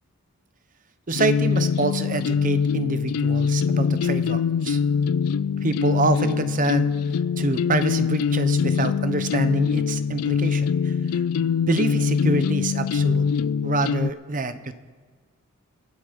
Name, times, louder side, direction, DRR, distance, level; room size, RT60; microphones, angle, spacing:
sound 1, 1.1-14.1, left 6 dB, 75° left, 0.3 m, -23 dB
voice 1, 1.1-4.8 5.6-6.9 7.4-11.2 11.7-13.3 13.6-14.7, right 2 dB, 35° right, 11 dB, 0.8 m, -26 dB
24.0 x 8.2 x 5.2 m, 1.5 s
head